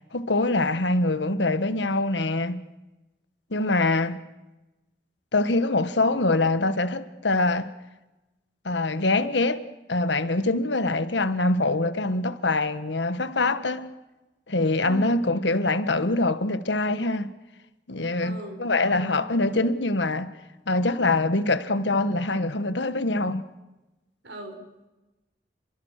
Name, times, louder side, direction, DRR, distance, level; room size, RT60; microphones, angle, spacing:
voice 1, 0.1-2.6 3.5-4.2 5.3-7.7 8.6-9.6 9.9-13.9 14.5-17.3 17.9-20.3 20.7-23.4, left 2 dB, 80° left, 1.5 m, -24 dB
voice 2, 14.8-15.2 18.2-19.2 24.2-24.6, equal, 85° right, 5.7 m, -38 dB
29.5 x 24.0 x 6.7 m
head